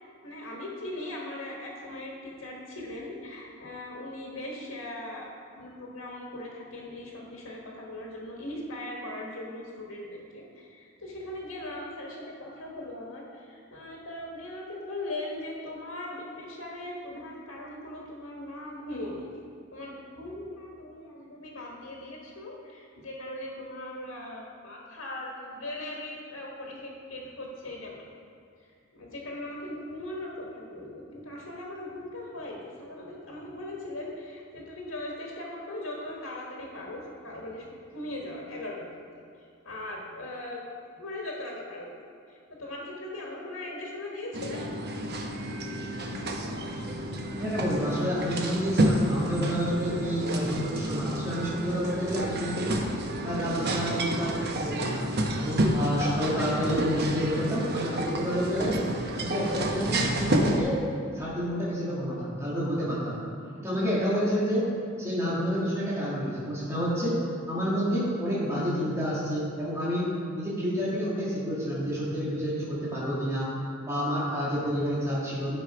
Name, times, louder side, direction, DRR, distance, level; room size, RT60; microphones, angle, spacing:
voice 1, 0.2-5.3 5.5-19.3 19.7-28.0 28.9-39.0 39.6-40.6 41.0-41.9 42.3-44.7, left 1 dB, 85° left, -2 dB, 1.5 m, -39 dB
sound 1, 44.3-60.6, right 1 dB, 55° right, 0.9 m, -30 dB
voice 2, 47.4-52.8 53.2-58.8 59.2-60.8 61.1-63.3 63.6-64.7 65.0-73.5 73.8-75.6, equal, 15° right, -8 dB, 1.9 m, -29 dB
11.0 x 5.3 x 4.9 m, 2.5 s
head